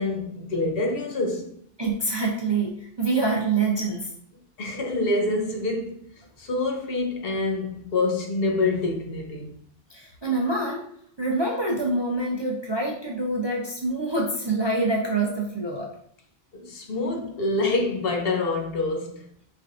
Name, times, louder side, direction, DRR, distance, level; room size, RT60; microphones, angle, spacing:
voice 1, 0.0-1.6 4.6-6.0 6.4-9.6 16.5-19.3, left 2 dB, 70° left, 0.9 m, -26 dB
voice 2, 1.8-4.1 9.9-10.8 11.2-15.9, right 3 dB, 40° right, 0.4 m, -26 dB
4.4 x 3.3 x 2.5 m
omnidirectional pair, 1.0 m